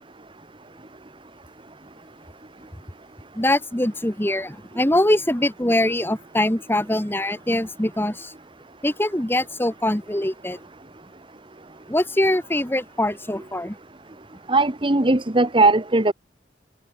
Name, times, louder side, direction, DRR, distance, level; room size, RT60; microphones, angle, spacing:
voice 1, 3.3-8.3 8.8-10.6 11.9-13.8, left 1 dB, 10° left, 1.5 m, -23 dB
voice 2, 14.5-16.1, right 2 dB, 30° right, 1.3 m, -18 dB
head